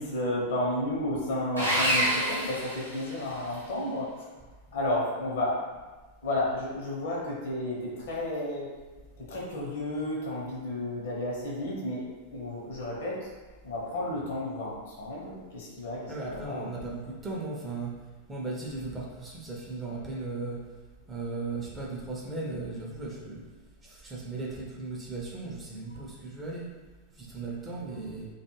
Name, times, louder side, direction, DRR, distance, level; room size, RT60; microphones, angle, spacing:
voice 1, 0.0-4.1 4.7-5.6 6.2-8.8 9.3-12.0 12.3-13.3 13.6-16.7, left 1 dB, 60° left, -4 dB, 0.8 m, -32 dB
Sawing, 1.6-3.5, right 1 dB, 85° right, 0.8 m, -27 dB
voice 2, 16.1-17.9 18.3-20.6 21.1-23.4 23.8-26.7 27.1-28.3, right 3 dB, 20° right, -4 dB, 0.5 m, -36 dB
2.3 x 2.1 x 3.1 m, 1.3 s
figure-of-eight pair, 90°, 0 cm